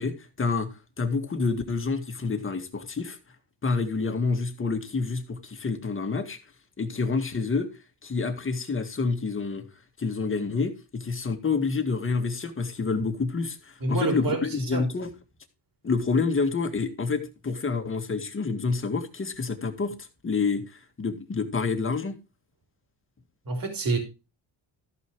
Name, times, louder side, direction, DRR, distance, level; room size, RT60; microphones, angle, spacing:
voice 1, 0.0-3.2 3.6-6.4 6.8-7.7 8.0-9.7 10.0-15.1 15.8-22.2, left 4 dB, 30° left, 2.0 m, -28 dB
voice 2, 13.8-14.4 14.7-14.8 23.5-24.0, right 3 dB, 50° right, 4.0 m, -27 dB
14.0 x 5.6 x 4.7 m
cardioid pair, 95°, 44 cm